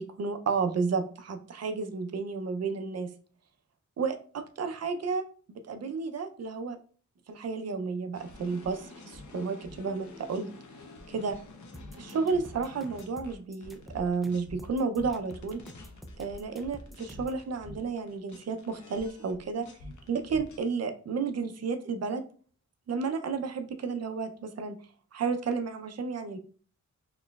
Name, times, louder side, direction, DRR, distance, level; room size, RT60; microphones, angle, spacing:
voice 1, 0.0-3.1 4.0-6.8 7.3-10.5 11.1-11.4 11.9-15.6 16.2-19.7 20.1-22.2 22.9-24.8 25.1-26.4, right 5 dB, 55° right, 8 dB, 0.5 m, -32 dB
sound 1, 8.1-14.7 15.0-20.6, left 2 dB, 75° left, 0.8 m, -48 dB
sound 2, 11.7-17.4, equal, ahead, 0.3 m, -48 dB
4.1 x 3.0 x 2.3 m, 0.42 s
wide cardioid pair, 120°, 30 cm